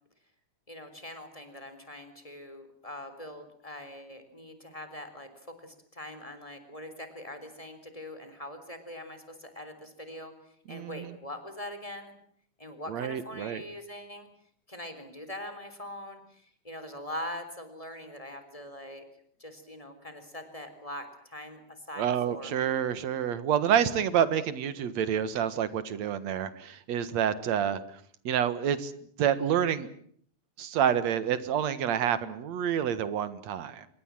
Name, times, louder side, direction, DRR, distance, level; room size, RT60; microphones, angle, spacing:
voice 1, 0.7-5.3 5.6-10.3 10.7-12.1 12.6-14.3 14.7-19.0 19.4-22.5, left 1 dB, 10° left, 8 dB, 3.7 m, -42 dB
voice 2, 10.7-11.2 12.9-13.6 22.0-27.8 28.2-28.9 29.2-29.9 30.6-33.9, right 9 dB, 70° right, 14 dB, 2.7 m, -28 dB
26.5 x 21.5 x 7.6 m, 0.62 s
omnidirectional pair, 3.3 m